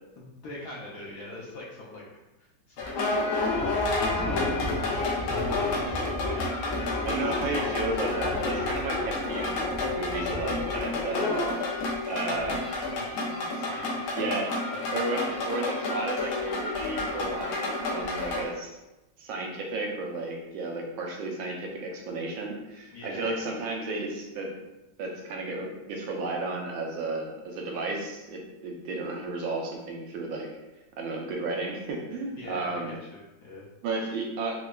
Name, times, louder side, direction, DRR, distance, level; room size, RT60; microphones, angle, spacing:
voice 1, 0.2-2.0 2.4-6.0 6.3-7.4 12.2-14.3 14.7-15.5 22.9-23.4 32.3-33.7, left 2 dB, 65° left, -5 dB, 1.0 m, -43 dB
sound 1, 2.8-18.5, left 2 dB, 90° left, 1.5 m, -29 dB
voice 2, 4.1-4.6 7.0-11.6 12.1-12.6 14.2-14.5 14.9-18.7 19.2-24.6 25.0-30.5 31.0-32.9 33.8-34.6, right 2 dB, 90° right, 0 dB, 1.4 m, -33 dB
4.6 x 2.1 x 2.2 m, 1.0 s
omnidirectional pair, 2.1 m